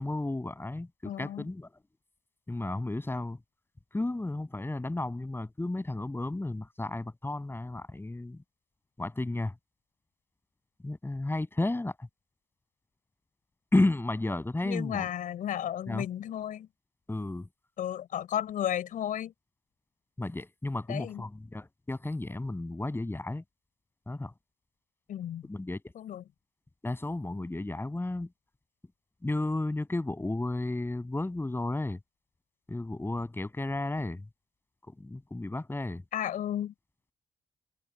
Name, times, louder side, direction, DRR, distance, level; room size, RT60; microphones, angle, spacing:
voice 1, 0.0-1.7 2.5-3.4 3.9-8.4 9.0-9.5 10.8-12.1 13.7-15.1 15.9-16.0 17.1-17.5 20.2-23.4 24.1-24.3 25.4-25.8 26.8-28.3 29.2-32.0 32.7-34.3 34.9-36.0, left 2 dB, 15° left, 7.0 m, -32 dB
voice 2, 1.0-1.5 14.6-16.7 17.8-19.3 20.9-21.2 25.1-25.4 26.0-26.2 36.1-36.7, left 10 dB, 85° left, 5.3 m, -33 dB
open air
cardioid pair, 85°, 13 cm